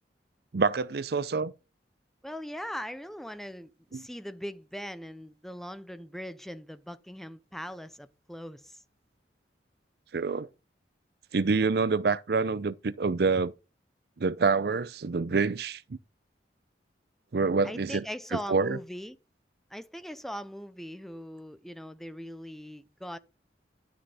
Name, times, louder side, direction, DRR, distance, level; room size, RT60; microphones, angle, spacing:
voice 1, 0.5-1.5 3.9-4.1 10.1-10.5 11.3-13.5 14.2-15.8 17.3-18.0 18.3-18.8, right 4 dB, 60° right, 0.5 m, -27 dB
voice 2, 2.2-8.8 17.6-19.2 19.7-23.2, equal, ahead, 0.5 m, -40 dB
11.5 x 6.2 x 4.1 m
head